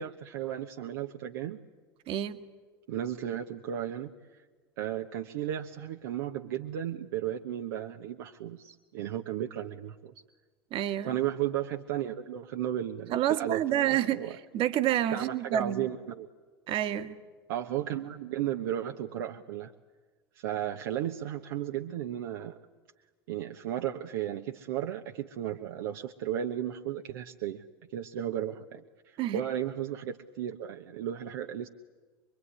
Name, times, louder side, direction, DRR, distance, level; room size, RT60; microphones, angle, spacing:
voice 1, 0.0-1.6 2.9-4.4 4.8-10.1 11.1-14.4 15.1-16.3 17.5-19.7 20.3-22.6 23.3-27.6 27.9-31.7, right 11 dB, 60° right, 4 dB, 1.1 m, -34 dB
voice 2, 2.1-2.4 10.7-11.2 13.1-14.2 14.5-15.9 16.7-17.2 29.2-29.5, right 12 dB, 45° right, 10 dB, 1.8 m, -28 dB
25.0 x 23.5 x 9.9 m, 1.3 s
figure-of-eight pair, 80°, 13 cm